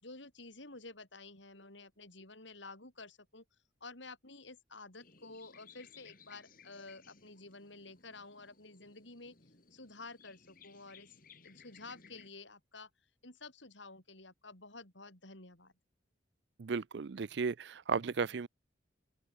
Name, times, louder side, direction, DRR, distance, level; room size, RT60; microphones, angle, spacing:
voice 1, 0.0-3.4 3.8-9.4 9.7-11.1 11.4-12.9 13.2-15.7, left 3 dB, 75° left, 6.7 m, -51 dB
sound 1, 5.0-12.3, left 5 dB, 45° left, 5.3 m, -61 dB
voice 2, 16.6-18.5, right 5 dB, 65° right, 0.5 m, -35 dB
open air
head